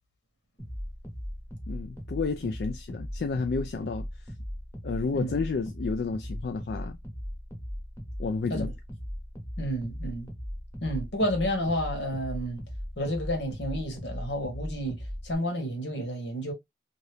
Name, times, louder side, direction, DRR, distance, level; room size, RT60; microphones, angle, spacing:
sound 1, 0.6-15.4, equal, 15° left, 1.0 m, -38 dB
voice 1, 1.7-4.1 4.8-7.0 8.2-8.7, left 4 dB, 65° left, 0.3 m, -31 dB
voice 2, 9.6-10.3 10.8-12.6 13.0-15.0 15.2-16.5, equal, 85° left, 1.3 m, -30 dB
2.8 x 2.6 x 3.2 m
head